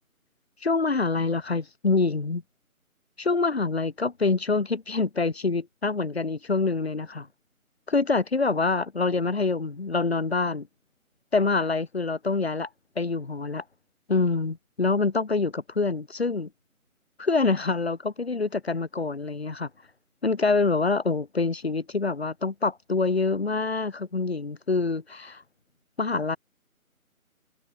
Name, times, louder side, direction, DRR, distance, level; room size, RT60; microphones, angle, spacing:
voice 1, 0.6-2.4 3.2-7.3 7.9-10.7 11.3-12.7 12.9-13.6 14.1-16.5 17.2-19.7 20.2-25.4 26.0-26.4, left 3 dB, 45° left, 3.2 m, -26 dB
figure-of-eight pair, 160°, 43 cm